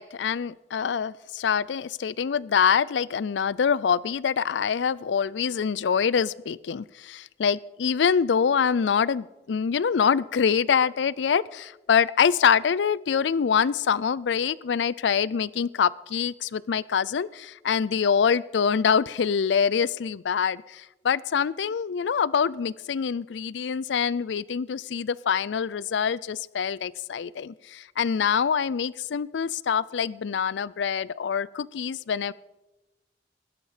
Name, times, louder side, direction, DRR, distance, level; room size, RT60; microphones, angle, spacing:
voice 1, 0.0-32.3, left 7 dB, 85° left, 22 dB, 0.4 m, -25 dB
17.0 x 12.5 x 5.0 m, 1.0 s
head